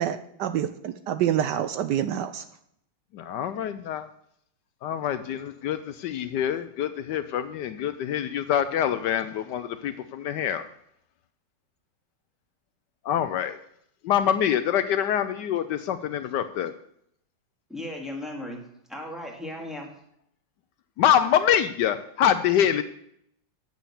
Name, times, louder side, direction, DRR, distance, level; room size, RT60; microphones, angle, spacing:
voice 1, 0.0-2.4, right 10 dB, 75° right, 10 dB, 1.1 m, -27 dB
voice 2, 3.1-4.1 4.8-10.6 13.0-13.6 14.0-16.7 21.0-22.8, left 9 dB, 75° left, 11 dB, 1.1 m, -25 dB
voice 3, 17.7-18.6 18.9-19.9, left 1 dB, ahead, 0 dB, 1.8 m, -36 dB
8.2 x 7.6 x 7.0 m, 0.71 s
omnidirectional pair, 2.1 m